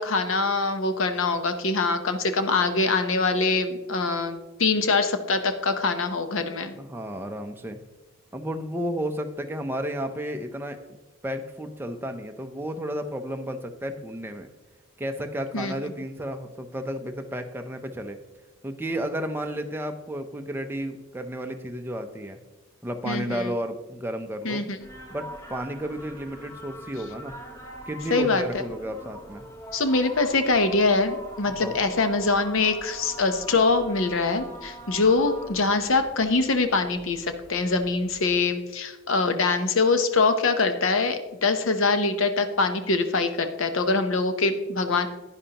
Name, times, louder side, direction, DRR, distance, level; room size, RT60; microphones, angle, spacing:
voice 1, 0.0-6.7 15.5-15.7 23.0-23.5 24.4-24.8 28.1-28.4 29.7-45.1, left 3 dB, 70° left, 8 dB, 0.8 m, -24 dB
voice 2, 6.7-7.8 8.3-10.8 11.2-14.5 15.0-18.2 18.6-22.4 22.8-24.6 25.1-27.4 27.9-29.5 31.6-31.8, equal, 10° right, 5 dB, 0.5 m, -32 dB
sound 1, 24.8-38.3, right 1 dB, 15° left, 1.1 m, -43 dB
10.5 x 9.9 x 2.9 m, 1.1 s
head